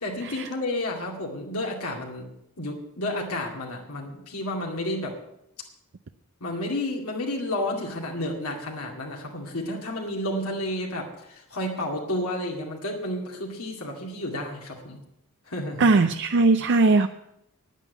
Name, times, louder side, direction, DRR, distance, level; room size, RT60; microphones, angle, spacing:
voice 1, 0.0-2.3 2.6-5.1 6.4-15.0 15.5-15.9, left 1 dB, 75° left, -1 dB, 2.2 m, -31 dB
voice 2, 15.8-17.1, right 3 dB, 55° right, 8 dB, 0.5 m, -19 dB
10.5 x 9.1 x 8.2 m, 0.78 s
head